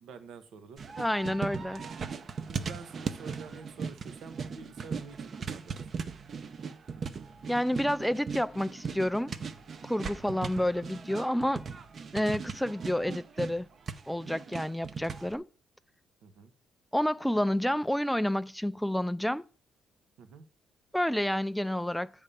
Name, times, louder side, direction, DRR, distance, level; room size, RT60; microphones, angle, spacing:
voice 1, 0.0-0.8 2.5-5.8 10.2-10.4 16.2-16.5 20.2-20.5, right 5 dB, 80° right, 1.0 m, -48 dB
sound 1, 0.8-15.3, right 5 dB, 50° right, 0.6 m, -39 dB
voice 2, 1.0-1.9 7.5-9.3 9.8-11.6 12.1-13.7 14.1-15.5 16.9-19.4 20.9-22.1, left 1 dB, ahead, 0.4 m, -29 dB
8.7 x 3.5 x 6.7 m
cardioid pair, 90°, 0 cm